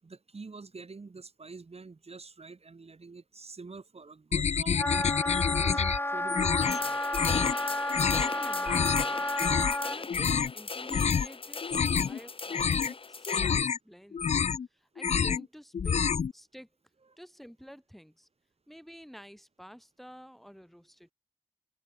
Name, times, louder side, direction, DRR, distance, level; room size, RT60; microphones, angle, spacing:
voice 1, 0.0-5.1 5.6-7.0, right 4 dB, 65° right, 7.7 m, -46 dB
sound 1, 4.3-6.0 6.3-6.8 7.1-7.6 7.9-8.3 8.7-9.1 9.4-9.8 10.1-10.5 10.9-11.3 11.6-12.2 12.5-12.9 13.3-13.8 14.1-14.7 15.0-15.5 15.7-16.3, left 6 dB, 90° left, 0.7 m, -27 dB
Wind instrument woodwind instrument, 4.7-10.0, left 1 dB, 20° left, 1.6 m, -32 dB
sound 2, 6.6-13.5, left 4 dB, 55° left, 0.9 m, -39 dB
voice 2, 8.1-9.3 9.8-11.7 12.0-14.4 14.7-16.7 17.2-18.3 18.7-21.1, equal, ahead, 5.0 m, -50 dB
cardioid pair, 50°, 11 cm